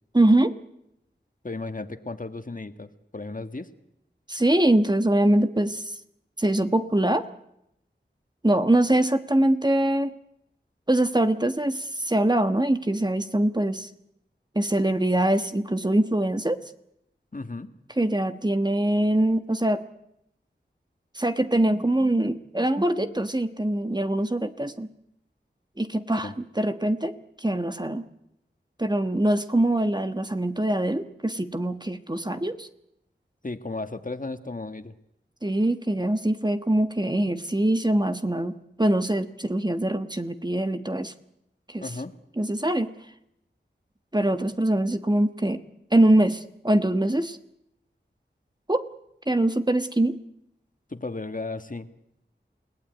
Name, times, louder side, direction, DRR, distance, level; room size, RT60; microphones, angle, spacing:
voice 1, 0.1-0.5 4.3-5.9 6.4-7.3 8.4-10.1 10.9-13.9 14.5-16.6 18.0-19.8 21.1-24.9 25.8-27.2 27.4-28.0 28.8-32.7 35.4-41.1 41.7-41.8 42.4-42.9 44.1-45.6 45.9-47.4 48.7-48.8 49.3-50.2, right 1 dB, 20° right, 9 dB, 1.3 m, -23 dB
voice 2, 1.4-3.7 17.3-17.7 26.2-26.3 33.4-34.9 41.8-42.1 50.9-51.9, left 3 dB, 45° left, 9 dB, 1.6 m, -34 dB
28.5 x 18.0 x 9.4 m, 0.82 s
wide cardioid pair, 60°, 20 cm